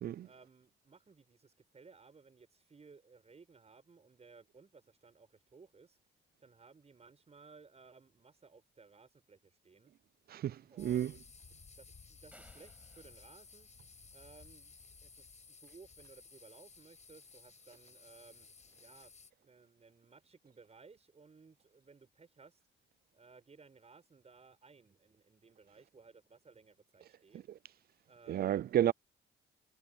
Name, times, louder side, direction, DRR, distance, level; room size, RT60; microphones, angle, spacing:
voice 1, 0.2-6.0 6.4-9.9 10.7-11.2 11.8-13.7 14.1-14.7 15.0-18.5 18.8-19.1 19.4-22.6 23.1-27.4 28.1-28.7, right 4 dB, 30° right, 6.5 m, -60 dB
voice 2, 10.3-11.1 28.3-28.9, right 11 dB, 50° right, 0.4 m, -31 dB
sound 1, 10.8-19.3, left 5 dB, 35° left, 5.3 m, -57 dB
sound 2, 12.3-14.5, right 1 dB, 5° right, 6.6 m, -64 dB
cardioid pair, 90°, 20 cm